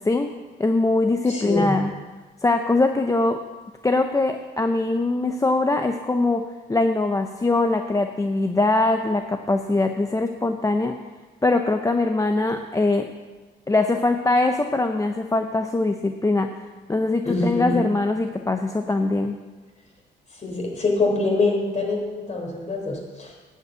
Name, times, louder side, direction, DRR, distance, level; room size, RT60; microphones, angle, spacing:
voice 1, 0.6-1.9 2.4-3.4 3.8-6.4 6.7-10.9 11.4-13.1 13.7-19.4, left 2 dB, 15° left, 6 dB, 0.6 m, -22 dB
voice 2, 1.3-1.8 17.3-17.8 20.4-23.3, left 2 dB, 35° left, 0 dB, 3.7 m, -24 dB
10.5 x 5.5 x 8.2 m, 1.3 s
cardioid pair, 90°, 20 cm